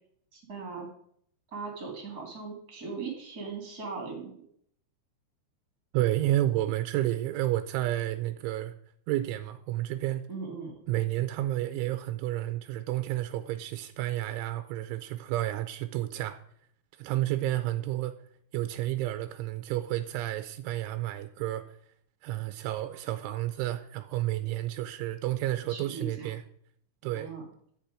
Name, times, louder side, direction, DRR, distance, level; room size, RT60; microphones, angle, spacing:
voice 1, 0.3-0.9 1.5-4.4 10.3-10.8 25.7-26.3 27.1-27.4, right 4 dB, 30° right, 2.1 m, -39 dB
voice 2, 5.9-8.7 9.1-10.3 10.9-16.4 17.0-18.2 18.5-21.8 22.2-26.4 27.0-27.3, right 14 dB, 85° right, 3.1 m, -31 dB
13.5 x 8.6 x 5.0 m
omnidirectional pair, 5.5 m